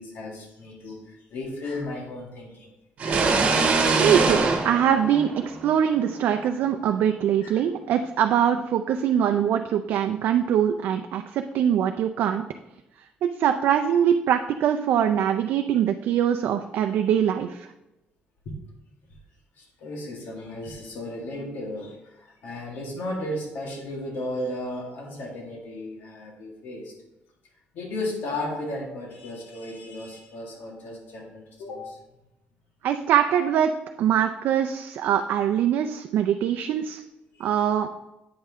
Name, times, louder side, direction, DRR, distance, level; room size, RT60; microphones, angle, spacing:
voice 1, 0.0-2.7 3.0-3.3 4.3-4.4 7.4-7.6 18.5-18.6 19.6-26.9 27.7-32.0 37.3-37.5, left 1 dB, 75° left, 0 dB, 1.9 m, -35 dB
sound 1, 3.0-5.8, right 4 dB, 45° right, 1.3 m, -23 dB
voice 2, 3.9-4.4 4.6-12.4 13.2-17.7 32.8-33.7 34.0-37.0 37.4-37.9, right 9 dB, 70° right, 6 dB, 0.4 m, -23 dB
8.6 x 5.5 x 3.5 m, 0.95 s
cardioid pair, 150°, 3 cm